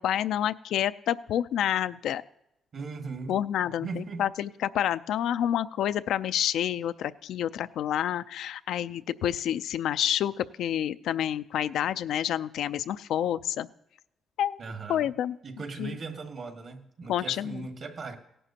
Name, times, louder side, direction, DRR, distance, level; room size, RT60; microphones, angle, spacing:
voice 1, 0.0-2.2 3.3-13.7 14.4-14.6 14.9-15.4 15.8-16.0 17.1-17.7, left 10 dB, 80° left, 13 dB, 0.4 m, -28 dB
voice 2, 2.7-3.4 3.8-4.3 14.6-15.1 15.4-18.2, right 4 dB, 55° right, 5 dB, 1.6 m, -38 dB
17.5 x 11.0 x 2.8 m, 0.84 s
cardioid pair, 90°, 0 cm